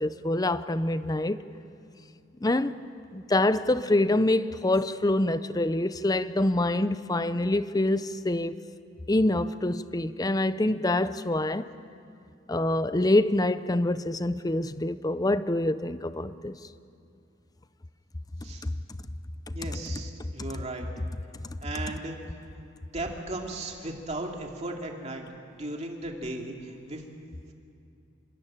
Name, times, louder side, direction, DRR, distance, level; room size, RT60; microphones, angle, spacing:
voice 1, 0.0-1.4 2.4-2.8 3.1-8.6 9.1-11.7 12.5-16.6 18.6-18.7 19.5-19.6, left 1 dB, 20° left, 0.6 m, -26 dB
voice 2, 19.5-20.9 21.6-22.2 22.9-25.3 25.6-27.0, right 2 dB, 35° right, 2.6 m, -36 dB
26.0 x 21.5 x 8.8 m
head